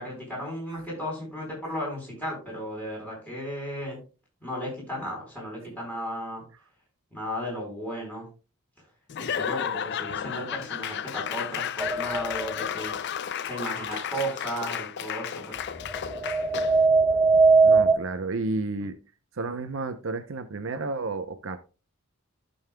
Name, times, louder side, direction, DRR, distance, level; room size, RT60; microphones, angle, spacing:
voice 1, 0.0-4.0 4.4-6.4 7.1-8.3 9.2-13.0 13.4-15.6, equal, 10° left, 4.2 m, -35 dB
Laughter / Applause / Crowd, 9.1-16.9, left 9 dB, 55° left, 0.4 m, -33 dB
sound 1, 11.8-12.5 15.8-18.0, right 4 dB, 10° right, 0.4 m, -20 dB
voice 2, 17.6-19.0 19.3-21.6, right 3 dB, 65° right, 0.7 m, -32 dB
14.5 x 5.5 x 2.2 m
head